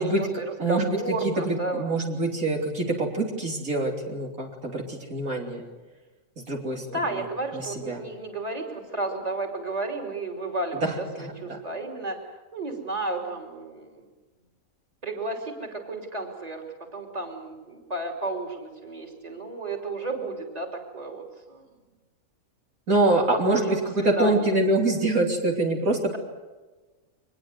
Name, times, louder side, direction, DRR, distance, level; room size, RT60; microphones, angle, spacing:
voice 1, 0.0-1.8 6.7-14.1 15.0-21.6 23.3-24.6, right 2 dB, 25° right, 2 dB, 3.3 m, -32 dB
voice 2, 0.6-5.7 6.4-6.9 7.5-8.0 10.8-11.6 22.9-26.2, right 2 dB, 70° right, 0 dB, 3.7 m, -25 dB
24.0 x 20.5 x 8.0 m, 1.2 s
omnidirectional pair, 1.5 m